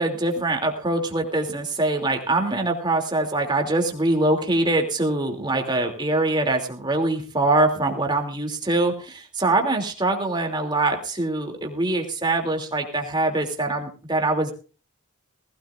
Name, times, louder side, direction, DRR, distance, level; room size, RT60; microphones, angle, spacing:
voice 1, 0.0-14.5, right 2 dB, 20° right, 3 dB, 2.7 m, -23 dB
19.5 x 16.5 x 2.5 m, 0.36 s
head